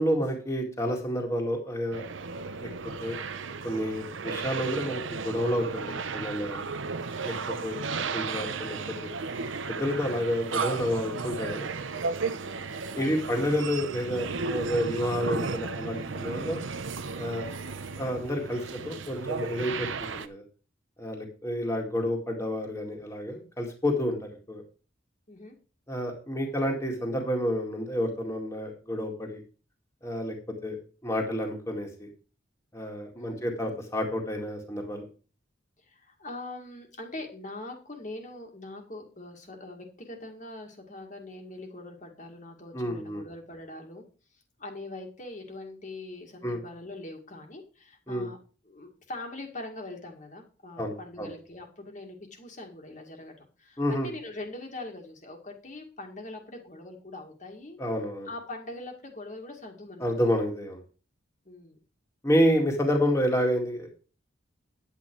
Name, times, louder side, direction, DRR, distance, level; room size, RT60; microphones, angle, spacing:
voice 1, 0.0-2.0 2.6-2.7 3.0-3.2 3.6-6.7 7.2-7.8 8.1-9.1 9.7-11.7 12.9-16.6 17.2-17.5 18.0-20.4 21.0-24.6 25.9-29.4 30.0-30.4 30.6-30.8 31.0-32.1 32.7-35.0 42.7-43.2 46.4-46.6 48.1-48.3 50.8-51.3 53.8-54.1 57.8-58.3 60.0-60.8 62.2-63.9, equal, 15° left, 1 dB, 2.0 m, -29 dB
sound 1, 1.9-20.3, right 4 dB, 80° right, 0.9 m, -34 dB
voice 2, 13.0-13.4 25.3-25.6 33.1-33.8 35.8-44.1 44.3-48.4 48.7-57.8 58.3-60.1 61.5-61.8, left 2 dB, 40° left, 2 dB, 1.9 m, -42 dB
10.0 x 8.9 x 4.6 m, 0.36 s
head